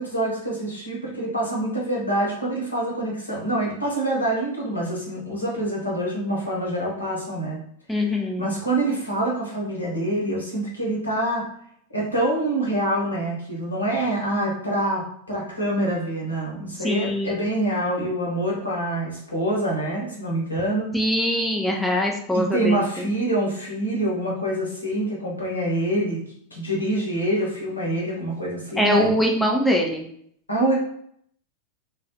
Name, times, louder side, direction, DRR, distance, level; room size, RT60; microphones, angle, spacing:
voice 1, 0.0-7.6 8.0-11.4 11.9-20.9 22.3-26.2 26.5-29.2 30.5-30.7, right 1 dB, 80° left, -4 dB, 0.9 m, -26 dB
voice 2, 7.9-8.5 16.8-17.4 20.9-23.1 28.8-30.1, left 1 dB, 5° left, 0 dB, 0.4 m, -23 dB
2.3 x 2.3 x 2.8 m, 0.67 s
figure-of-eight pair, 90°, 0 cm